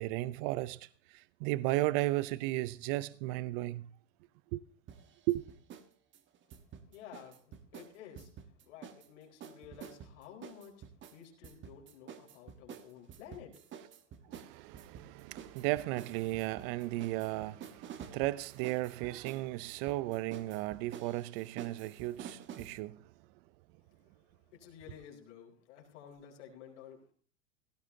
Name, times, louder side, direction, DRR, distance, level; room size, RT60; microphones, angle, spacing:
voice 1, 0.0-3.9 4.5-4.6 5.3-5.4 14.3-23.0, right 18 dB, 50° right, 0.6 m, -35 dB
sound 1, 4.9-5.9 6.1-9.1 9.4-22.8, right 8 dB, 30° right, 1.4 m, -50 dB
voice 2, 6.9-10.9 11.1-13.6 24.0-24.1 24.5-27.1, left 9 dB, 70° left, 4.6 m, -52 dB
17.0 x 14.5 x 2.8 m
hypercardioid pair, 105°, 37 cm